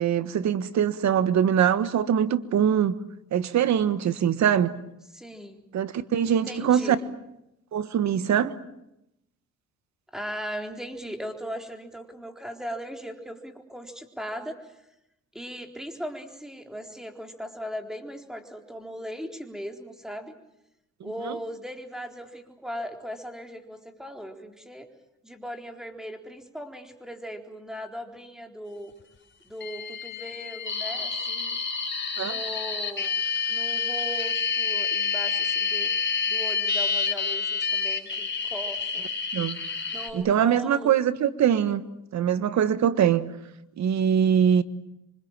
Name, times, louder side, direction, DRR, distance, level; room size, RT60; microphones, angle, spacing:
voice 1, 0.0-2.9 3.3-4.7 5.7-6.9 7.7-8.5 21.2-21.3 32.2-32.4 39.3-39.6 40.1-41.8 42.1-43.3 43.8-44.6, right 9 dB, 65° right, 1.6 m, -23 dB
voice 2, 5.1-5.6 6.3-7.0 10.1-14.8 15.3-20.3 21.0-24.9 25.2-28.9 29.4-31.6 32.2-35.9 36.3-39.1 39.9-41.0, equal, ahead, 4.1 m, -38 dB
sound 1, 29.6-40.1, left 5 dB, 40° left, 4.6 m, -28 dB
27.0 x 25.0 x 7.5 m
cardioid pair, 90°, 30 cm